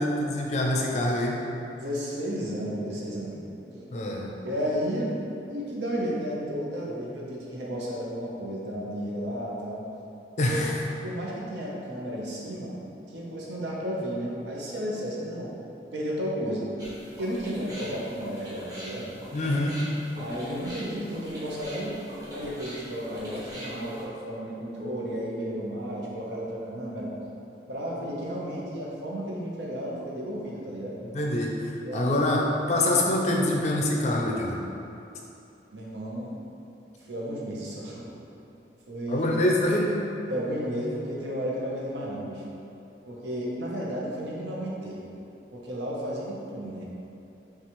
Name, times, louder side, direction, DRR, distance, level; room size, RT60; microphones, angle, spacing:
voice 1, 0.0-1.4 3.9-4.3 10.4-10.8 19.3-19.9 31.0-32.4 32.7-34.5 39.1-39.9, left 1 dB, 40° left, -1 dB, 0.4 m, -25 dB
voice 2, 1.7-3.4 3.7-3.8 4.4-5.1 5.5-9.8 10.5-10.6 11.0-12.7 13.1-15.5 15.9-16.7 17.2-19.1 20.1-22.0 22.3-27.1 27.7-31.0 31.8-32.3 35.7-36.4 37.1-38.1 38.9-39.3 40.3-42.4 43.1-45.0 45.5-46.9, equal, 80° right, -4 dB, 0.8 m, -33 dB
sound 1, 16.8-24.0, equal, 20° right, 0.9 m, -41 dB
5.8 x 2.4 x 3.0 m, 2.8 s
head